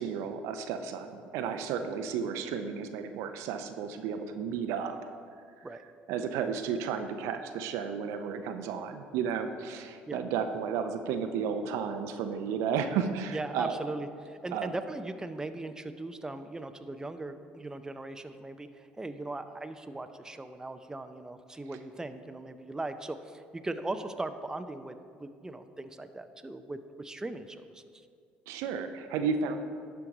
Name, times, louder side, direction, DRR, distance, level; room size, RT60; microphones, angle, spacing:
voice 1, 0.0-5.0 6.1-13.8 14.5-14.7 28.5-29.6, right 6 dB, 70° right, 8 dB, 0.5 m, -33 dB
voice 2, 13.3-27.8, right 2 dB, 10° right, 9 dB, 0.5 m, -39 dB
11.5 x 4.6 x 3.9 m, 2.2 s
hypercardioid pair, 65°, 5 cm